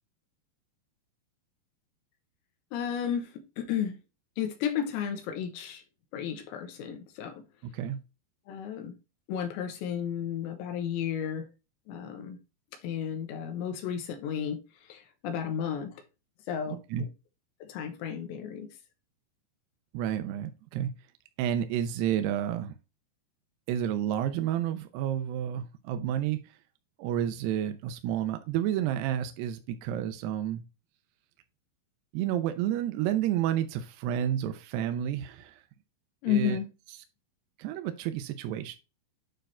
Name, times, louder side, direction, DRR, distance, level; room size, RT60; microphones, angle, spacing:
voice 1, 2.7-4.0 4.4-5.8 6.1-7.4 8.5-9.0 9.3-11.5 11.9-12.4 12.8-16.0 16.5-17.1 17.6-18.7 36.2-36.7, left 8 dB, 80° left, 3.3 m, -33 dB
voice 2, 19.9-20.9 21.4-22.7 23.7-26.4 27.0-30.6 32.1-35.5 36.3-36.6 37.6-38.8, right 10 dB, 80° right, 2.6 m, -30 dB
9.2 x 3.9 x 4.3 m
omnidirectional pair, 5.2 m